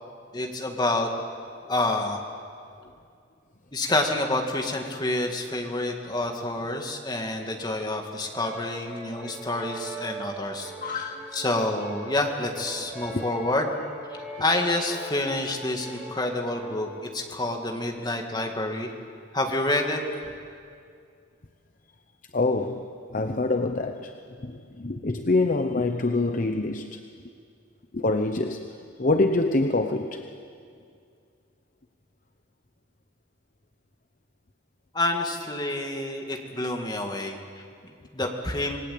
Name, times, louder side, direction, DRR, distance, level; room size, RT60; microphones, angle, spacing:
voice 1, 0.3-1.1 1.7-2.2 3.7-13.8 14.4-18.9 19.3-20.0 34.9-38.8, left 2 dB, 20° left, 2 dB, 2.3 m, -28 dB
Brass instrument, 8.3-16.9, right 1 dB, 5° right, 7.1 m, -41 dB
voice 2, 10.8-11.3 13.1-13.2 22.3-24.1 24.4-27.0 27.9-28.7 29.0-30.2, left 2 dB, 40° left, 6 dB, 0.9 m, -25 dB
27.0 x 20.5 x 8.7 m, 2.4 s
head